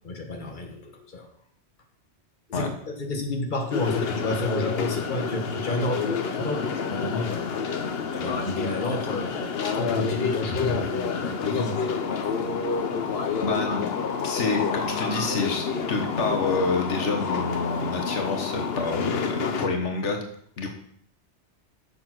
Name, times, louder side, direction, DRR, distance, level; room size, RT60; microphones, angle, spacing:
voice 1, 0.0-1.3 2.5-7.5 8.2-11.9, left 2 dB, 45° left, 2 dB, 1.6 m, -30 dB
sound 1, 3.7-19.7, left 6 dB, 60° left, 1.0 m, -29 dB
voice 2, 10.5-10.8 13.4-13.9 14.2-20.2 20.6-20.7, left 3 dB, 90° left, 3 dB, 1.5 m, -28 dB
7.2 x 6.9 x 5.9 m, 0.64 s
omnidirectional pair, 1.2 m